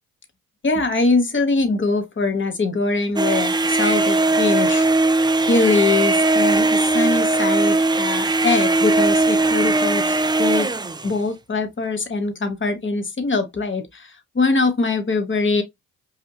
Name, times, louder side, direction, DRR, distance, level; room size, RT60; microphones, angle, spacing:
voice 1, 0.6-4.9 5.5-10.7 11.0-15.6, left 3 dB, 30° left, 1.3 m, -22 dB
sound 1, 3.2-11.2, right 2 dB, 10° right, 0.4 m, -19 dB
4.8 x 2.7 x 2.3 m
supercardioid pair, 50°, 38 cm